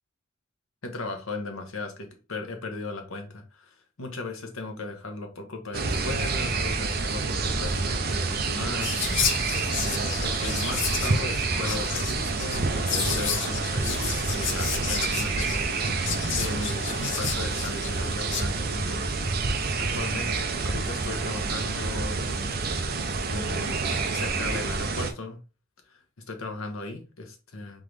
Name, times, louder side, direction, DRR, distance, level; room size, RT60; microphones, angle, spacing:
voice 1, 0.8-16.0 16.4-19.0 19.8-22.5 23.3-25.4 26.3-27.8, left 2 dB, 90° left, 1.1 m, -37 dB
sound 1, 5.7-25.1, right 3 dB, 45° right, 0.6 m, -28 dB
Whispering, 8.8-18.4, left 8 dB, 60° left, 0.6 m, -32 dB
3.8 x 3.7 x 3.2 m
head